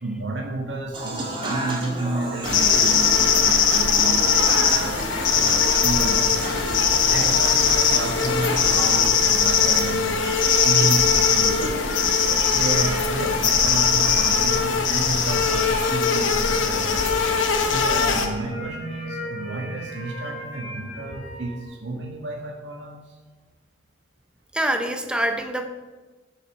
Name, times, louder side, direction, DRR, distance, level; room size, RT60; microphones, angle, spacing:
voice 1, 0.0-6.5 6.9-11.7 12.1-17.1 17.6-23.2, right 2 dB, 70° right, -1 dB, 1.6 m, -31 dB
Human voice / Acoustic guitar / Piano, 0.9-8.9, right 1 dB, 25° right, 1.5 m, -32 dB
sound 1, 2.4-18.3, left 6 dB, 80° left, 1.0 m, -20 dB
sound 2, 10.2-21.7, right 1 dB, 45° left, 2.3 m, -37 dB
voice 2, 24.5-25.7, right 1 dB, 5° right, 6 dB, 0.6 m, -25 dB
8.4 x 5.5 x 6.2 m, 1.3 s
head